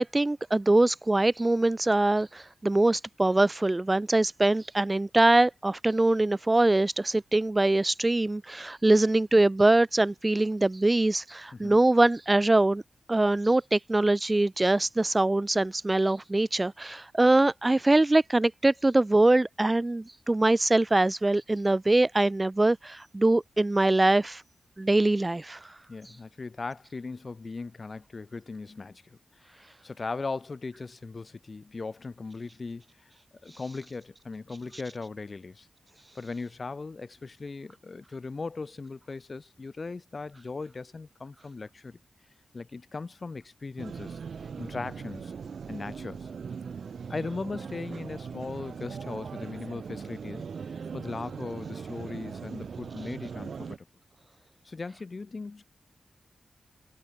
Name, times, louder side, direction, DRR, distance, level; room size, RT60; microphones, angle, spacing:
voice 1, 0.0-12.8 13.1-24.4 24.8-25.6, right 2 dB, 20° right, 0.7 m, -23 dB
voice 2, 25.9-29.2 29.8-32.8 33.4-35.7 36.2-42.0 42.5-44.2 44.6-45.3 45.7-46.3 47.1-50.5 50.9-53.8 54.6-55.6, left 3 dB, 45° left, 3.7 m, -38 dB
sound 1, 43.8-53.8, right 6 dB, 75° right, 1.2 m, -40 dB
wide cardioid pair, 90°, 0 cm